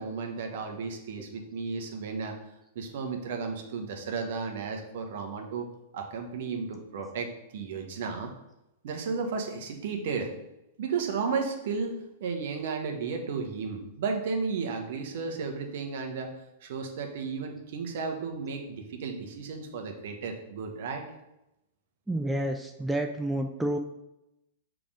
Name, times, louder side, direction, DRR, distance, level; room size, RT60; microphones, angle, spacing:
voice 1, 0.0-2.3 2.7-5.7 5.9-8.3 8.8-10.3 10.8-16.3 16.6-21.0, right 5 dB, 55° right, 3 dB, 1.3 m, -33 dB
voice 2, 22.1-23.8, right 1 dB, 5° right, 4 dB, 0.5 m, -29 dB
7.0 x 3.8 x 4.9 m, 0.90 s
figure-of-eight pair, 100°, 0 cm